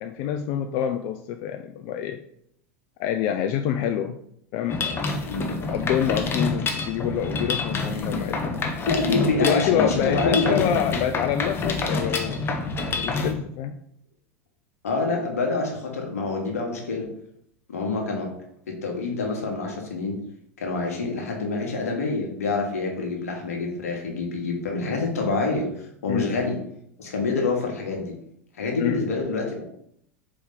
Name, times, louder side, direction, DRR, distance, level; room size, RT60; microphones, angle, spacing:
voice 1, 0.0-2.2 3.0-4.2 4.5-5.1 5.7-8.6 9.4-12.5 12.9-13.7 26.1-26.3 28.8-29.0, left 9 dB, 55° left, 6 dB, 0.3 m, -26 dB
Mechanisms, 4.7-13.3, left 3 dB, 30° left, 0.8 m, -27 dB
voice 2, 8.9-10.7 14.8-17.1 17.7-18.3 18.7-20.2 20.6-26.6 27.0-28.2 28.5-29.6, left 3 dB, 85° left, 1 dB, 1.2 m, -26 dB
4.2 x 3.0 x 3.7 m, 0.71 s
hypercardioid pair, 95°, 8 cm